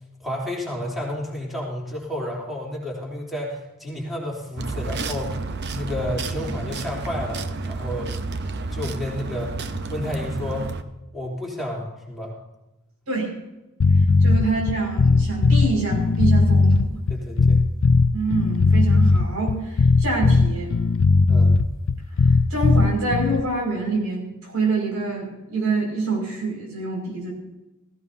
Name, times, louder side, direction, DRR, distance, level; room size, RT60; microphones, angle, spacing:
voice 1, 0.2-5.4 5.7-8.2 8.7-9.5 9.9-10.7 11.1-12.4 14.4-14.5 17.1-17.6 21.3-21.5, left 1 dB, ahead, -4 dB, 3.2 m, -31 dB
sound 1, 4.6-10.8, right 3 dB, 50° right, 0.8 m, -30 dB
sound 2, 13.8-23.4, left 3 dB, 60° left, 0.5 m, -17 dB
voice 2, 14.2-17.0 18.1-20.7 22.5-27.3, right 3 dB, 80° right, 0 dB, 5.8 m, -26 dB
16.5 x 16.0 x 2.8 m, 0.99 s
head